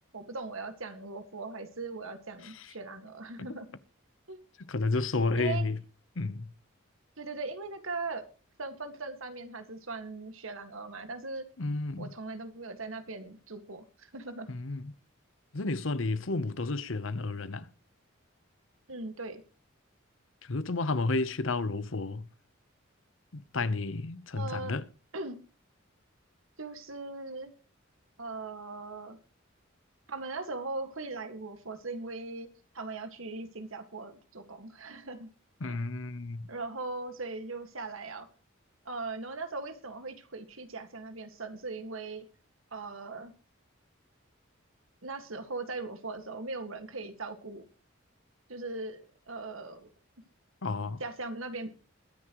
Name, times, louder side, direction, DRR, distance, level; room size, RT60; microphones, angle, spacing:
voice 1, 0.1-3.7 4.3-4.4 5.4-5.6 7.2-8.3 8.6-11.5 12.0-14.5 18.9-19.4 24.3-24.7 25.1-25.4 26.6-27.5 28.2-29.2 30.1-32.5 32.7-35.3 36.5-38.3 38.9-42.3 42.7-43.3 45.0-47.6 48.5-49.9 51.0-51.7, right 3 dB, 80° right, 1.9 m, -39 dB
voice 2, 2.4-2.7 3.5-3.6 4.7-5.8 6.2-6.5 11.6-12.1 14.5-14.9 15.5-17.7 20.4-22.3 23.3-24.8 35.6-36.5 50.6-51.0, left 3 dB, 70° left, 0.9 m, -31 dB
21.5 x 9.8 x 3.1 m
head